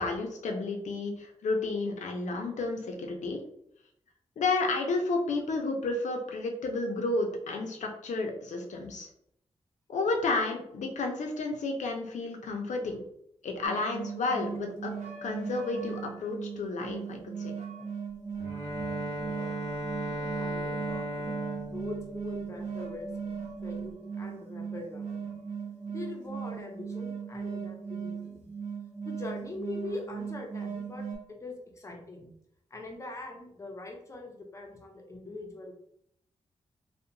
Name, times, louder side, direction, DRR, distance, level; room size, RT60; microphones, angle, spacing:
voice 1, 0.0-3.4 4.4-9.1 9.9-13.0 13.4-14.9 15.2-17.5, left 3 dB, 85° left, 2 dB, 0.5 m, -31 dB
sound 1, 13.6-31.2, right 6 dB, 80° right, 0.8 m, -38 dB
Bowed string instrument, 18.4-23.0, right 1 dB, 20° right, 1.1 m, -36 dB
voice 2, 18.8-19.5 20.0-23.1 23.6-25.3 25.9-28.4 29.0-32.3 32.7-35.7, left 2 dB, 25° left, 2 dB, 0.5 m, -42 dB
2.8 x 2.1 x 2.5 m, 0.72 s
wide cardioid pair, 160°, 12 cm